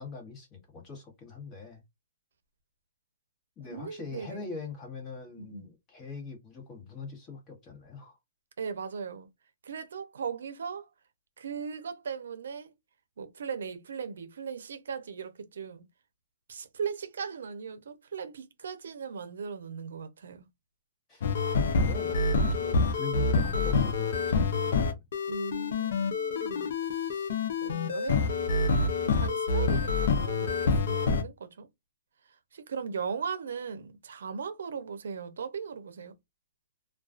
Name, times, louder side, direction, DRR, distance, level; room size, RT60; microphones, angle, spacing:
voice 1, 0.0-1.8 3.6-8.2 21.1-25.0, left 4 dB, 25° left, 1.1 m, -43 dB
voice 2, 3.7-4.4 5.3-5.7 8.6-9.3 9.6-10.9 11.4-12.7 13.2-15.9 16.5-20.5 25.3-27.3 27.6-28.5 29.0-31.7 32.2-36.2, right 6 dB, 80° right, 0.5 m, -38 dB
sound 1, 21.2-31.2, left 4 dB, 65° left, 0.5 m, -27 dB
2.3 x 2.3 x 2.3 m
hypercardioid pair, 150°, 0 cm